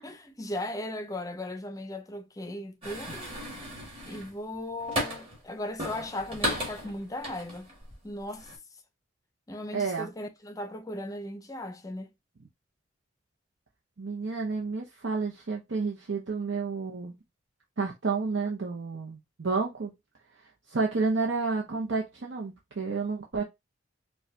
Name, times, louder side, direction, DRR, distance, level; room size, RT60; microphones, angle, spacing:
voice 1, 0.0-3.3 4.1-7.7 8.0-8.5 9.5-12.1, left 1 dB, 15° left, 0.5 m, -37 dB
sound 1, 2.8-5.4 5.8-7.9 8.3-8.6, equal, 30° right, 1.6 m, -35 dB
voice 2, 9.7-10.1 14.0-17.1 17.8-19.9 20.7-23.4, right 4 dB, 70° right, 0.7 m, -30 dB
4.6 x 2.3 x 2.6 m
head